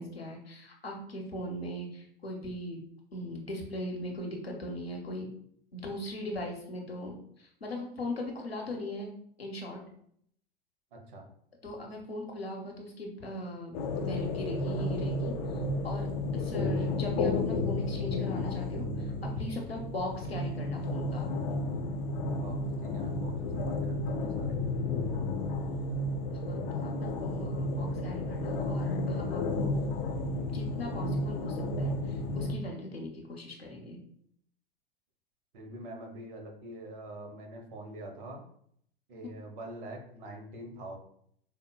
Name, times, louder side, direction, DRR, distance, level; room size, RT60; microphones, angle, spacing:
voice 1, 0.0-2.9 3.1-5.3 5.7-9.1 9.4-9.8 11.6-21.3 26.3-29.8 30.5-34.0, left 1 dB, 90° left, 0 dB, 0.8 m, -39 dB
voice 2, 10.9-11.3 22.3-24.6 35.5-38.4 39.1-41.0, right 1 dB, 55° right, 2 dB, 1.0 m, -44 dB
sound 1, 13.7-32.5, left 2 dB, 45° left, 0.5 m, -32 dB
4.9 x 2.1 x 2.2 m, 0.67 s
figure-of-eight pair, 90°, 30 cm